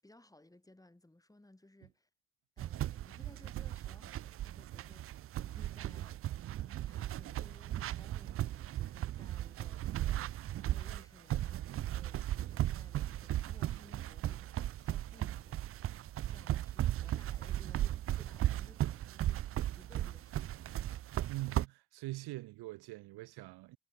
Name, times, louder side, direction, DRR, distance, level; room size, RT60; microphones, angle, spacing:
voice 1, 0.0-2.1 2.6-6.2 6.6-16.0 16.3-20.9, left 1 dB, 10° left, 7.1 m, -61 dB
sound 1, 2.6-21.7, right 13 dB, 35° right, 0.4 m, -36 dB
voice 2, 21.3-23.8, right 19 dB, 75° right, 2.4 m, -43 dB
supercardioid pair, 85°, 39 cm